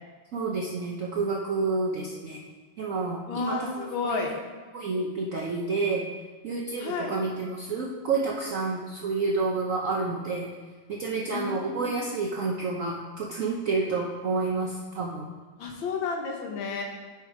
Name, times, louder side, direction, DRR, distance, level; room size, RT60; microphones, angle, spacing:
voice 1, 0.3-2.4 2.8-4.3 4.7-6.0 6.4-10.5 10.9-15.3, right 3 dB, 70° right, -2 dB, 0.8 m, -29 dB
voice 2, 3.3-4.3 6.8-7.2 11.2-11.9 15.6-16.8, left 5 dB, 75° left, 1 dB, 1.8 m, -32 dB
8.4 x 4.5 x 4.9 m, 1.4 s
omnidirectional pair, 2.2 m